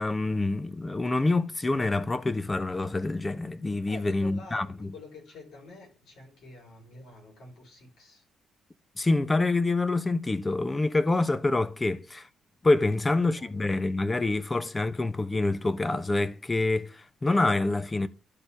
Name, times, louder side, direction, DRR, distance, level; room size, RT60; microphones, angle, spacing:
voice 1, 0.0-4.9 9.0-12.3 12.6-18.1, left 2 dB, 20° left, 0.8 m, -26 dB
voice 2, 3.9-8.2 13.0-13.7, left 2 dB, 70° left, 3.8 m, -49 dB
12.0 x 4.1 x 3.5 m
cardioid pair, 90°, 0 cm